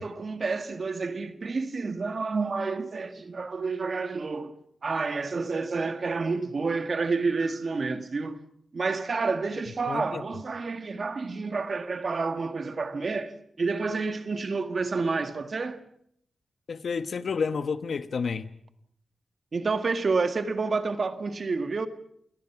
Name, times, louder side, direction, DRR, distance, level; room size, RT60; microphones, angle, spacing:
voice 1, 0.0-4.5 4.8-8.4 8.7-15.8 19.5-21.9, right 4 dB, 50° right, 1.8 m, -29 dB
voice 2, 9.9-10.2 16.7-18.5, left 5 dB, 65° left, 1.2 m, -30 dB
28.5 x 18.5 x 5.9 m
cardioid pair, 75°, 0 cm